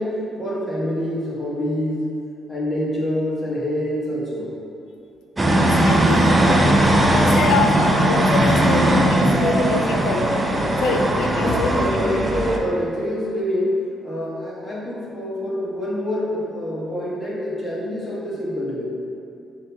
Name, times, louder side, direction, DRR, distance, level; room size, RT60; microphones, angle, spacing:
voice 1, 0.0-2.1 2.5-4.6 11.3-18.8, equal, 20° left, -8 dB, 1.4 m, -26 dB
voice 2, 5.4-6.7 7.1-10.3 10.8-11.7, left 4 dB, 85° left, 3 dB, 0.4 m, -25 dB
sound 1, 5.4-12.6, right 1 dB, 20° right, 0.4 m, -18 dB
7.3 x 2.8 x 2.3 m, 2.5 s
cardioid pair, 90°, 0 cm